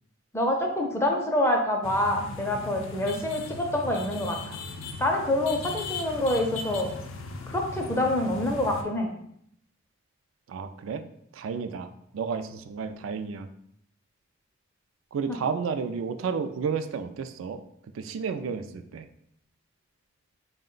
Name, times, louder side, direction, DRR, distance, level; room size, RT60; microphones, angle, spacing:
voice 1, 0.3-4.6 5.0-6.9 7.5-9.1 15.3-15.4, left 1 dB, 15° left, 2 dB, 0.5 m, -26 dB
sound 1, 1.8-8.8, left 3 dB, 80° left, 0.5 m, -38 dB
voice 2, 10.5-11.0 11.3-11.9 12.1-13.5 15.1-17.6 17.9-19.1, right 6 dB, 80° right, 8 dB, 0.3 m, -31 dB
4.3 x 2.2 x 3.8 m, 0.71 s
head